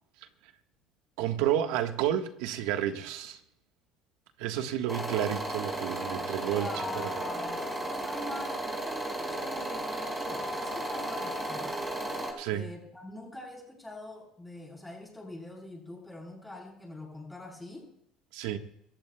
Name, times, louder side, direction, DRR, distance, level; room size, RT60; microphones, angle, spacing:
voice 1, 1.2-3.4 4.4-6.7 7.0-7.1 12.4-12.7 18.3-18.6, right 11 dB, 85° right, 1.4 m, -30 dB
sound 1, 4.9-12.3, right 1 dB, 10° right, 5.2 m, -34 dB
voice 2, 6.4-11.9 12.5-17.9, left 2 dB, 5° left, 7.0 m, -43 dB
26.0 x 14.5 x 2.3 m
supercardioid pair, 100°, 0 cm